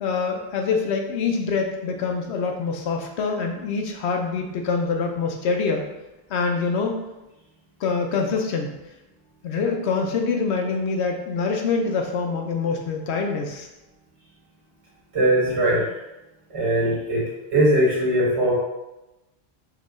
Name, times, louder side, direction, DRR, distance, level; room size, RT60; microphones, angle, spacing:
voice 1, 0.0-5.8 6.3-6.9 7.8-8.8 9.4-13.7, left 4 dB, 85° left, 3 dB, 1.0 m, -25 dB
voice 2, 15.1-15.8 16.5-17.3 17.5-18.5, right 1 dB, 85° right, -6 dB, 1.9 m, -20 dB
4.6 x 3.0 x 3.6 m, 0.98 s
omnidirectional pair, 1.1 m